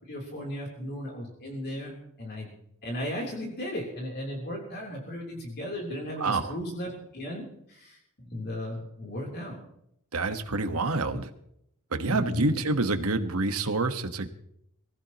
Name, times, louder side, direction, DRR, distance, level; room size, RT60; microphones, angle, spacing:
voice 1, 0.1-2.5 2.8-9.6 11.1-11.2 12.1-12.6, equal, 50° left, -1 dB, 3.4 m, -36 dB
voice 2, 6.2-6.6 10.1-11.3 11.9-14.3, right 3 dB, 85° right, 8 dB, 1.4 m, -27 dB
24.0 x 15.0 x 3.0 m, 0.75 s
head